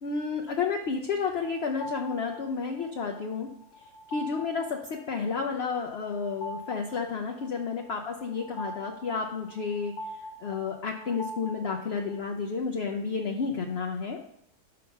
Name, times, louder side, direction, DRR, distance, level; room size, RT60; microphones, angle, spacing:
voice 1, 0.0-3.5 3.8-14.2, left 5 dB, 55° left, 2 dB, 0.7 m, -31 dB
sound 1, 1.4-12.2, equal, 80° left, 1.3 m, -44 dB
5.6 x 5.2 x 5.6 m, 0.71 s
omnidirectional pair, 1.7 m